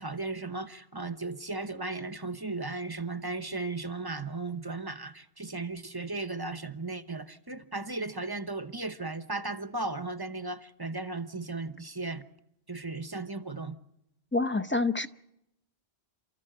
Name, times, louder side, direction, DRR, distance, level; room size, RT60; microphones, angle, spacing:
voice 1, 0.0-12.2 12.7-13.7, right 3 dB, 25° right, 0.8 m, -36 dB
voice 2, 14.3-15.1, left 3 dB, 15° left, 0.6 m, -27 dB
28.5 x 14.0 x 7.8 m
omnidirectional pair, 1.1 m